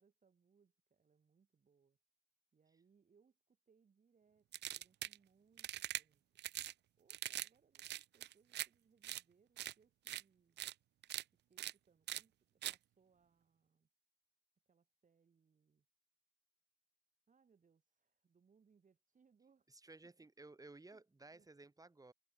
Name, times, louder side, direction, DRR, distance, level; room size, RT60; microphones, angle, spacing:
voice 1, 0.0-2.0 2.5-6.4 7.0-10.6 11.3-13.9 14.7-15.9 17.3-19.7 20.9-21.0 21.3-21.5, right 5 dB, 40° right, 7.8 m, -74 dB
sound 1, 4.5-5.2 5.6-6.0 6.4-6.7 7.1-7.5 7.7-8.7 9.0-9.2 9.6-9.7 10.1-10.2 10.6-10.7 11.0-11.2 11.6-11.7 12.1-12.2 12.6-12.8, right 13 dB, 60° right, 0.4 m, -43 dB
voice 2, 19.7-22.1, right 2 dB, 15° right, 3.6 m, -57 dB
cardioid pair, 90°, 20 cm